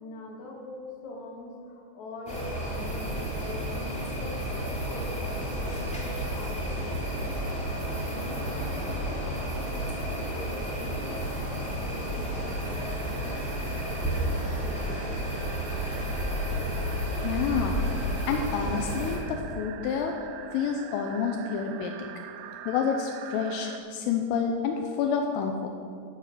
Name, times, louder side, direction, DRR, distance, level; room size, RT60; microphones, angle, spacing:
voice 1, 0.0-14.9, left 2 dB, 60° left, -1 dB, 2.0 m, -43 dB
sound 1, 2.3-19.2, equal, 5° left, 1.5 m, -31 dB
sound 2, 12.4-23.8, right 9 dB, 90° right, 3.3 m, -45 dB
voice 2, 17.2-17.8 18.3-20.2 20.5-21.9 22.7-25.7, left 6 dB, 85° left, 3 dB, 3.3 m, -29 dB
15.5 x 7.4 x 5.9 m, 2.3 s
omnidirectional pair, 5.9 m